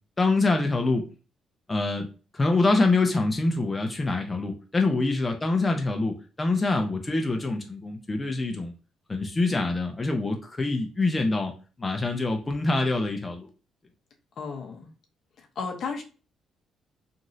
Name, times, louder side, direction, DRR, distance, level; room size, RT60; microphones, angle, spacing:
voice 1, 0.2-1.0 1.7-2.1 2.3-8.7 9.1-11.5 11.8-13.5, left 3 dB, 25° left, 0.5 m, -25 dB
voice 2, 14.4-14.9 15.4-16.0, left 5 dB, 60° left, 0.7 m, -34 dB
3.0 x 2.6 x 2.5 m
cardioid pair, 90°, 0 cm